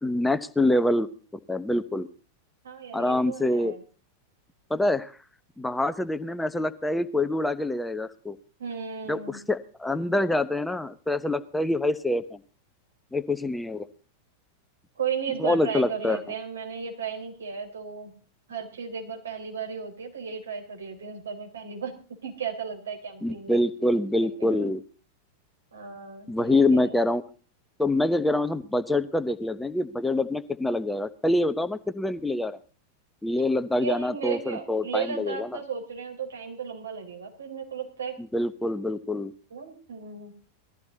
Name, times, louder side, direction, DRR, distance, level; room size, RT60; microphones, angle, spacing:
voice 1, 0.0-1.1 1.5-2.1 2.9-3.7 4.7-5.2 5.6-8.4 9.1-12.4 13.1-13.9 15.4-16.2 23.2-24.8 26.3-27.2 27.8-32.6 33.2-35.5 38.2-39.3, left 1 dB, 5° left, 13 dB, 0.9 m, -25 dB
voice 2, 2.6-3.8 8.6-9.4 14.9-18.1 18.5-22.0 22.2-24.7 25.7-26.9 33.8-38.2 39.5-40.3, right 6 dB, 70° right, 2 dB, 4.6 m, -35 dB
19.5 x 14.0 x 4.1 m, 0.38 s
figure-of-eight pair, 90°, 0 cm